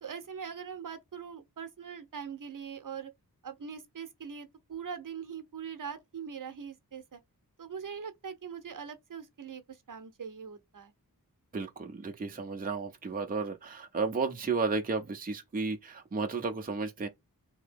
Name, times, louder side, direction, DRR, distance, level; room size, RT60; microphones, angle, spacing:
voice 1, 0.0-3.1 3.4-7.2 7.6-10.9, right 7 dB, 55° right, 0.7 m, -42 dB
voice 2, 11.5-17.1, right 4 dB, 25° right, 0.5 m, -33 dB
2.8 x 2.8 x 3.4 m
wide cardioid pair, 90°, 37 cm